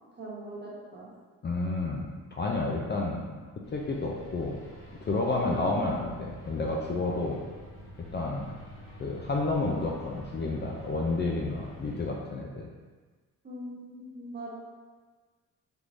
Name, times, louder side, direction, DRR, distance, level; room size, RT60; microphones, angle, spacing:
voice 1, 0.1-1.1 5.6-5.9 13.4-14.5, right 1 dB, 30° right, -6 dB, 1.3 m, -41 dB
voice 2, 1.4-3.2 3.7-4.6 5.0-7.4 8.1-8.4 9.0-12.7, left 3 dB, 30° left, -1 dB, 0.4 m, -30 dB
sound 1, 3.6-12.1, equal, 70° left, 1.1 m, -47 dB
3.5 x 3.0 x 2.5 m, 1.4 s
supercardioid pair, 65°, 33 cm